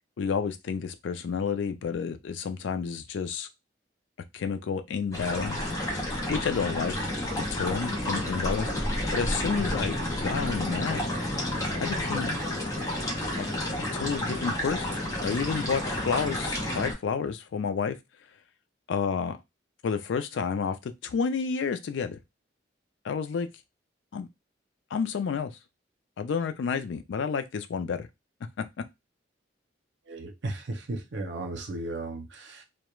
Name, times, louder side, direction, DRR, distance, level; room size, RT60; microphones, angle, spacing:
voice 1, 0.2-3.5 4.3-5.7 6.3-6.9 7.3-11.0 11.8-12.3 13.4-13.5 13.9-14.9 15.2-18.0 18.9-19.4 19.8-22.2 23.0-23.5 24.1-24.3 24.9-25.5 26.2-28.1 28.6-28.8, left 6 dB, 70° left, 0.3 m, -30 dB
sound 1, 5.1-16.9, left 1 dB, 20° left, 0.6 m, -30 dB
voice 2, 30.1-32.6, right 2 dB, 65° right, 0.6 m, -35 dB
2.2 x 2.1 x 3.0 m
head